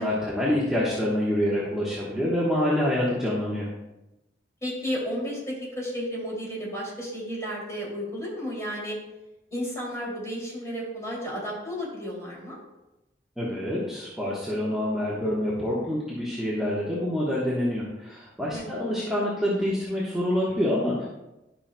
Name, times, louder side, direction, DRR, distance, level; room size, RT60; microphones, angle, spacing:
voice 1, 0.0-3.7 13.4-21.1, left 1 dB, 5° right, -7 dB, 1.2 m, -26 dB
voice 2, 4.6-9.0 9.5-12.6 18.5-18.9, equal, 20° left, -5 dB, 2.7 m, -33 dB
11.5 x 5.8 x 2.2 m, 0.97 s
head